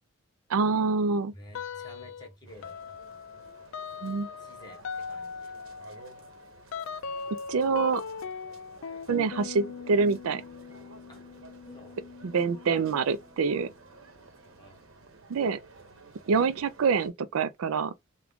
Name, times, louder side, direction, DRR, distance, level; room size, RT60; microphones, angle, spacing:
voice 1, 0.5-1.3 4.0-4.3 7.5-8.0 9.1-10.4 12.2-13.7 15.3-15.6 16.3-17.9, right 5 dB, 90° right, 0.4 m, -26 dB
voice 2, 1.3-3.0 4.4-5.5 11.1-11.2 11.7-12.0 14.6-14.8, left 1 dB, 20° left, 1.2 m, -51 dB
sound 1, 1.5-2.3 2.6-13.0, left 5 dB, 65° left, 0.4 m, -40 dB
sound 2, 2.5-17.1, right 3 dB, 75° right, 1.0 m, -53 dB
sound 3, 10.2-15.3, left 3 dB, 10° right, 1.8 m, -57 dB
3.5 x 2.3 x 3.5 m
head